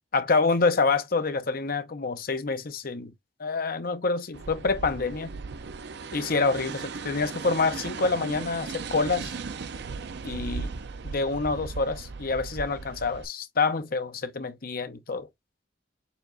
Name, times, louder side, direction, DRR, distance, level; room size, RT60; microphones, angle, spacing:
voice 1, 0.1-3.1 3.4-5.3 6.1-9.3 10.2-10.7 11.0-15.3, left 4 dB, 50° left, 0.7 m, -27 dB
sound 1, 4.3-13.3, right 4 dB, 65° right, 0.5 m, -37 dB
6.9 x 2.9 x 2.5 m
head